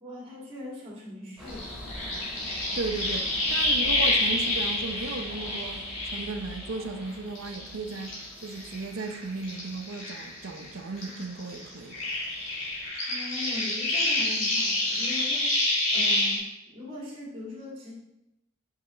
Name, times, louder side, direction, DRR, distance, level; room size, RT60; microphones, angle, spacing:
voice 1, 0.0-1.8 13.1-15.6 15.9-17.9, left 2 dB, 25° right, 1.8 m, -40 dB
sound 1, 1.4-12.9, equal, ahead, 2.4 m, -45 dB
sound 2, 1.5-7.0 7.4-10.7 11.0-16.4, left 2 dB, 65° left, 2.5 m, -28 dB
voice 2, 2.7-8.2 8.4-12.1, right 3 dB, 70° right, 0.6 m, -35 dB
5.7 x 5.5 x 3.9 m
head